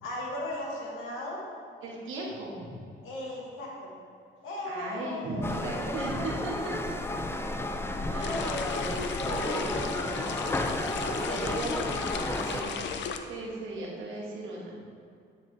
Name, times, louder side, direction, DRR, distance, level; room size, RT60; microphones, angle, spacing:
voice 1, 0.0-1.5 3.0-3.9 4.4-6.2 8.1-10.6 11.0-11.4 12.4-12.7, left 1 dB, 90° left, -2 dB, 1.8 m, -38 dB
voice 2, 1.8-2.7 4.7-7.0 8.1-8.6 9.2-9.7 11.3-11.9 12.2-12.7 13.3-14.9, right 2 dB, 85° right, -3 dB, 1.8 m, -37 dB
sound 1, 5.4-12.6, left 1 dB, 10° left, 0.5 m, -32 dB
sound 2, 8.2-13.2, left 6 dB, 65° left, 0.6 m, -36 dB
9.8 x 6.2 x 3.4 m, 2.4 s
cardioid pair, 90°, 20 cm